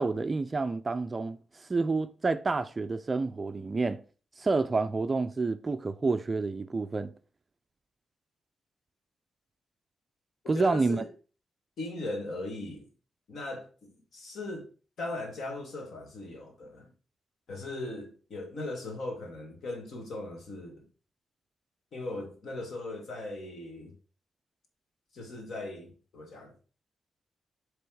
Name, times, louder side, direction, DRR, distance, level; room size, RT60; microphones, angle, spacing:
voice 1, 0.0-1.4 1.7-4.0 4.4-7.1 10.5-11.0, right 3 dB, 25° right, 0.3 m, -29 dB
voice 2, 10.4-11.1 11.8-12.9 13.3-14.7 15.0-16.9 17.5-20.9 21.9-24.0 25.1-26.5, left 2 dB, 60° left, 1.8 m, -39 dB
7.2 x 3.4 x 4.5 m
wide cardioid pair, 155°, 0 cm